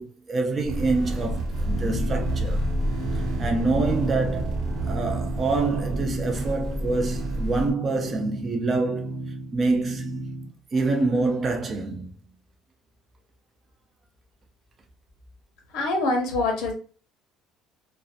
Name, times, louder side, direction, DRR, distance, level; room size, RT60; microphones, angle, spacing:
voice 1, 0.0-2.6 3.4-9.1 9.5-10.2 10.7-12.3, right 3 dB, 20° right, 0.3 m, -26 dB
sound 1, 0.6-7.7, right 1 dB, 45° right, 0.9 m, -29 dB
sound 2, 1.6-10.5, right 2 dB, 85° right, 1.2 m, -35 dB
voice 2, 15.7-16.7, left 2 dB, 70° left, 0.8 m, -24 dB
2.5 x 2.1 x 2.4 m
cardioid pair, 170°, 0 cm